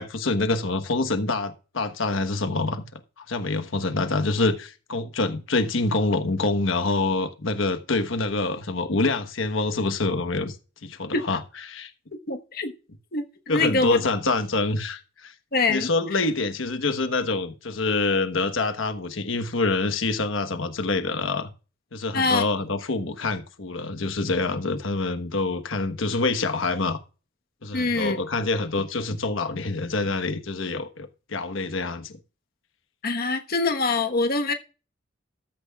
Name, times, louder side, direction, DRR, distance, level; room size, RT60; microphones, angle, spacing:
voice 1, 0.0-2.8 3.2-10.6 10.8-11.4 11.7-11.9 13.5-15.3 15.7-21.5 21.9-27.0 27.6-32.2, left 3 dB, 90° left, 1.2 m, -26 dB
voice 2, 12.3-12.7 13.1-14.0 15.5-15.9 22.1-22.4 27.7-28.2 33.0-34.5, left 3 dB, 50° left, 1.3 m, -24 dB
14.0 x 12.5 x 2.4 m
head